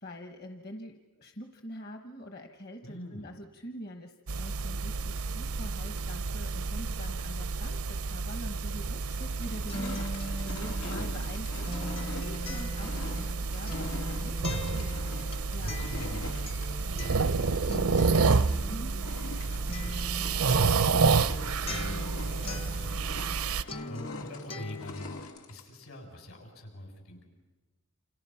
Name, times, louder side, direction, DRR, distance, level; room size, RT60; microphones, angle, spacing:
voice 1, 0.0-15.8 18.7-19.1 23.7-24.3, equal, 45° left, 5 dB, 1.2 m, -45 dB
voice 2, 2.8-3.3 10.8-11.2 15.6-18.7 19.4-27.2, equal, 75° left, 2 dB, 7.0 m, -45 dB
sound 1, 4.3-23.6, right 4 dB, 80° right, 0.7 m, -30 dB
sound 2, 8.4-8.5 9.1-25.9, left 3 dB, 90° left, 2.7 m, -46 dB
Acoustic guitar, 9.2-23.4 23.7-25.2, left 1 dB, 25° left, 0.7 m, -41 dB
29.0 x 27.0 x 5.7 m, 1.2 s
head